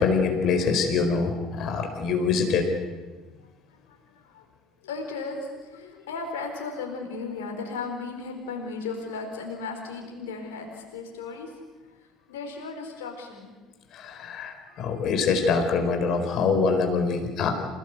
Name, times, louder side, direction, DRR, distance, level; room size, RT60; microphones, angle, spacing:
voice 1, 0.0-2.7 13.9-17.5, left 5 dB, 55° left, 5 dB, 4.6 m, -24 dB
voice 2, 4.8-11.5 12.3-13.5, left 4 dB, 75° left, 2 dB, 4.2 m, -35 dB
27.5 x 18.0 x 8.1 m, 1.3 s
hypercardioid pair, 60°, 0 cm